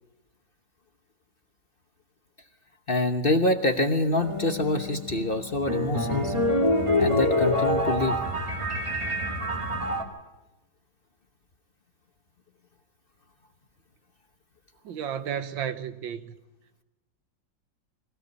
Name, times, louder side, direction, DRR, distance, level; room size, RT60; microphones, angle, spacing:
voice 1, 2.9-6.3 7.0-8.2, left 2 dB, 35° left, 1.1 m, -26 dB
sound 1, 4.2-10.0, left 1 dB, 15° right, 2.0 m, -26 dB
voice 2, 14.8-16.4, right 8 dB, 85° right, 1.8 m, -33 dB
22.0 x 16.5 x 8.2 m
omnidirectional pair, 2.0 m